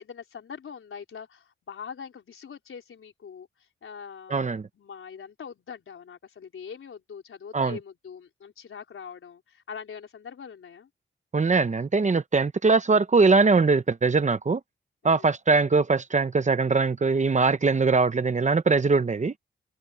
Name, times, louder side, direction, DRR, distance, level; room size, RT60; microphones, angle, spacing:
voice 1, 0.0-3.5 3.8-10.9 15.0-15.3, left 6 dB, 85° left, 4.3 m, -42 dB
voice 2, 4.3-4.6 7.5-7.8 11.3-14.6 15.0-19.3, right 4 dB, 35° right, 0.9 m, -21 dB
wide cardioid pair, 105°, 21 cm